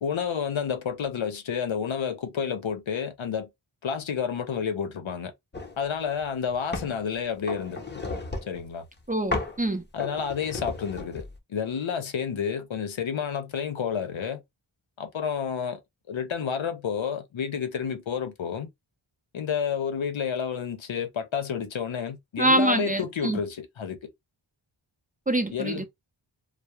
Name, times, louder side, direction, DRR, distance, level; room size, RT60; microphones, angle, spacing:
voice 1, 0.0-3.5 3.8-5.3 5.8-8.0 8.5-8.8 9.9-14.4 15.0-15.8 16.1-18.7 19.3-24.1 25.5-25.9, left 7 dB, 75° left, 0.7 m, -30 dB
sound 1, 5.5-5.8 6.2-7.0 7.5-8.7 9.3-9.6 10.0-11.4, left 3 dB, 20° left, 0.7 m, -34 dB
voice 2, 9.1-9.8 22.4-23.4 25.3-25.9, right 1 dB, 20° right, 0.5 m, -25 dB
2.3 x 2.0 x 2.9 m
wide cardioid pair, 50°, 48 cm